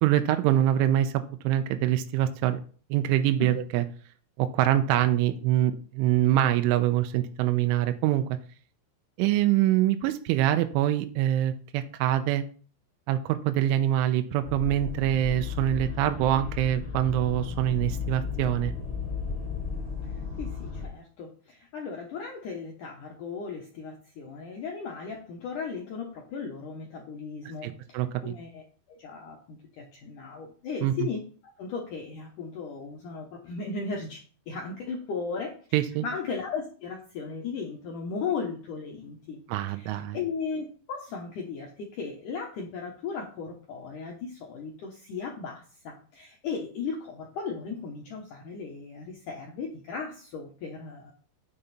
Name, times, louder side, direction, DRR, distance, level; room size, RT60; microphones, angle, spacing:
voice 1, 0.0-2.6 2.9-3.8 4.4-8.2 9.2-12.4 13.1-18.7 27.6-28.3 30.8-31.1 35.7-36.0 39.5-40.2, right 12 dB, 85° right, 8 dB, 3.1 m, -25 dB
sound 1, 14.4-20.9, left 6 dB, 5° left, 4.2 m, -34 dB
voice 2, 20.4-28.6 28.9-31.2 31.6-39.4 39.7-51.1, left 5 dB, 90° left, 0 dB, 1.8 m, -36 dB
8.8 x 6.9 x 4.2 m, 0.42 s
omnidirectional pair, 5.5 m